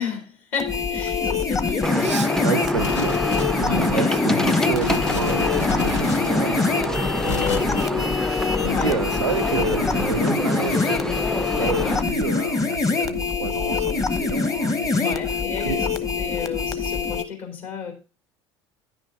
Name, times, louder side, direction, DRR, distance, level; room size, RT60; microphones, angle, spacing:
voice 1, 0.0-2.0 3.6-4.2 8.6-9.0 11.5-12.0 15.0-15.9 16.2-17.9, left 6 dB, 55° left, 3.2 m, -32 dB
sound 1, 0.6-17.2, left 4 dB, 25° left, 1.1 m, -24 dB
sound 2, 1.8-12.0, left 1 dB, 5° left, 0.5 m, -26 dB
voice 2, 1.9-3.2 3.6-8.4 8.8-11.2 11.6-15.2 15.6-15.8, right 6 dB, 80° right, 0.5 m, -30 dB
sound 3, 2.8-3.8 4.3-4.4 4.7-7.8 8.4-8.5, left 5 dB, 75° left, 1.1 m, -32 dB
10.5 x 6.2 x 3.7 m
figure-of-eight pair, 60°, 15 cm